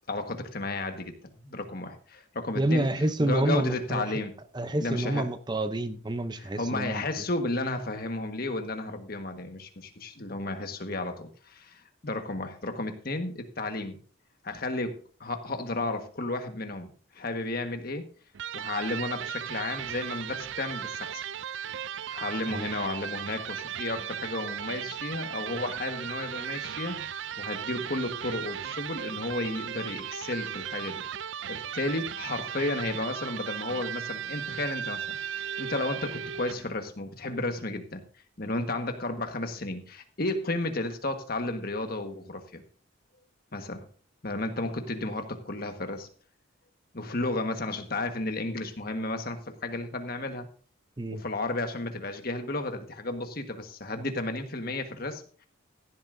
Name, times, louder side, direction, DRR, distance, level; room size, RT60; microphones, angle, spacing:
voice 1, 0.1-1.1 1.4-2.9 3.2-4.3 4.8-5.3 6.4-14.0 14.4-18.1 18.5-21.2 22.1-31.0 31.5-38.0 38.4-42.6 43.5-43.8 44.2-46.1 46.9-50.5 51.1-55.5, left 2 dB, 50° left, 6 dB, 1.5 m, -33 dB
voice 2, 2.5-4.2 4.5-7.0 22.5-22.7 51.0-51.2, right 1 dB, 20° right, 11 dB, 0.6 m, -28 dB
Electric guitar, 18.3-36.7, right 9 dB, 65° right, 0.4 m, -36 dB
16.0 x 11.0 x 2.6 m, 0.43 s
head